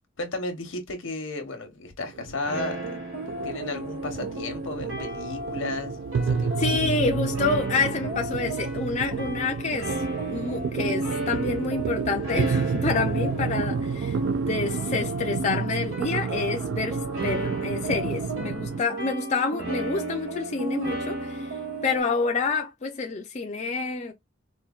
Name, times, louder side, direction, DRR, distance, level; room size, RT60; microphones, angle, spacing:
voice 1, 0.2-3.0 3.4-6.7 7.0-7.4, left 2 dB, 80° left, 1.0 m, -34 dB
sound 1, 2.0-18.8, right 5 dB, 65° right, 0.3 m, -30 dB
sound 2, 2.4-22.0, right 2 dB, 85° right, 1.6 m, -34 dB
voice 2, 6.6-9.9 10.3-21.5 21.8-24.1, left 4 dB, 35° left, 0.4 m, -28 dB
4.3 x 2.2 x 2.3 m
head